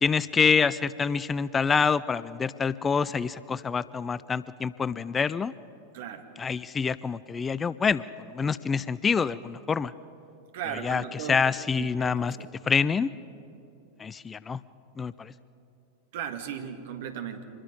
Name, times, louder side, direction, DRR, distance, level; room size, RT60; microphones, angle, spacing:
voice 1, 0.0-5.5 6.4-8.0 8.3-9.9 10.7-12.4 12.6-13.1 14.0-14.6 15.0-15.3, left 5 dB, 20° left, 18 dB, 0.4 m, -26 dB
voice 2, 10.5-11.4 11.8-12.5 16.1-17.4, right 8 dB, 55° right, 7 dB, 1.7 m, -36 dB
25.5 x 21.5 x 5.2 m, 2.9 s
figure-of-eight pair, 90°, 0 cm